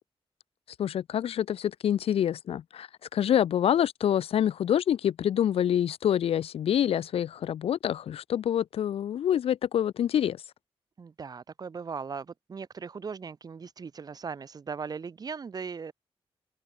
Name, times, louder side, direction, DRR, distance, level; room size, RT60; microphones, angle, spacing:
voice 1, 0.8-10.4, left 10 dB, 70° left, 0.4 m, -26 dB
voice 2, 11.0-15.9, right 5 dB, 40° right, 1.5 m, -38 dB
open air
wide cardioid pair, 165°, 10 cm